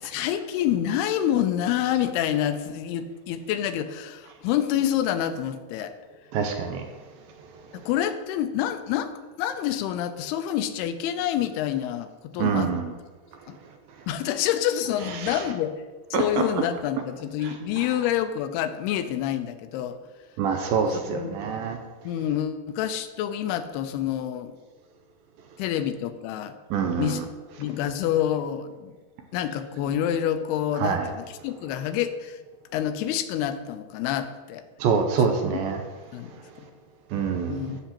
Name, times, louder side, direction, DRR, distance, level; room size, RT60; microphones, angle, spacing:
voice 1, 0.0-5.9 7.7-9.1 9.4-12.7 13.5-13.6 14.1-15.8 16.1-20.0 21.0-21.4 22.0-24.6 25.6-26.6 27.0-27.2 27.6-29.0 29.3-32.4 32.7-34.6 35.2-35.3 36.1-36.3 37.5-37.8, left 10 dB, 85° left, 10 dB, 2.6 m, -27 dB
voice 2, 6.3-6.8 12.4-12.9 15.2-15.4 16.1-16.4 17.4-17.5 20.4-21.8 26.7-27.2 30.8-31.1 34.8-35.8 37.1-37.6, right 6 dB, 85° right, 5 dB, 2.2 m, -25 dB
15.5 x 5.8 x 2.9 m, 1.3 s
omnidirectional pair, 4.6 m